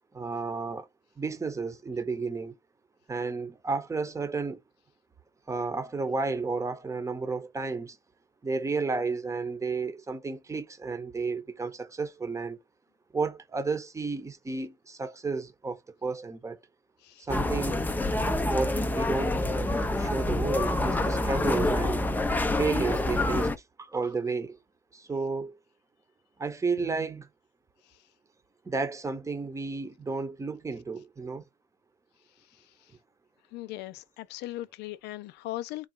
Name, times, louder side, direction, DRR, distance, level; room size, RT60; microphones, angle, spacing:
voice 1, 0.1-0.9 1.2-2.5 3.1-4.6 5.5-8.0 8.4-12.6 13.1-16.6 17.2-17.9 18.4-19.5 19.9-22.1 22.5-24.6 24.9-25.6 26.4-27.3 28.6-31.4, right 4 dB, 15° right, 0.9 m, -32 dB
sound 1, 17.3-23.6, left 2 dB, 10° left, 0.5 m, -27 dB
voice 2, 33.5-35.9, left 16 dB, 85° left, 0.4 m, -39 dB
3.8 x 2.3 x 4.3 m
cardioid pair, 110°, 17 cm